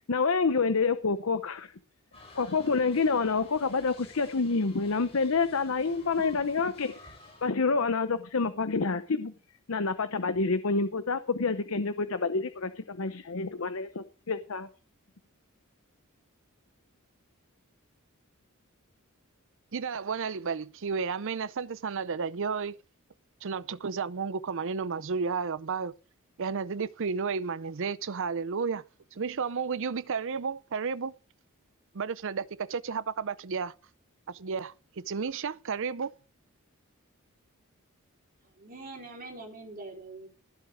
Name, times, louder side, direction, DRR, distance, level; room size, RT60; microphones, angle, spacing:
voice 1, 0.0-1.7 2.3-7.1 7.4-9.3 9.7-14.7, left 4 dB, 70° left, 0.8 m, -28 dB
sound 1, 2.1-7.5, left 2 dB, 30° left, 6.8 m, -52 dB
voice 2, 19.7-22.8 23.4-25.9 26.4-28.8 29.1-31.1 31.9-33.7 34.3-36.1, right 5 dB, 60° right, 0.6 m, -32 dB
voice 3, 38.6-40.3, right 2 dB, 45° right, 4.7 m, -43 dB
15.5 x 8.0 x 5.0 m
head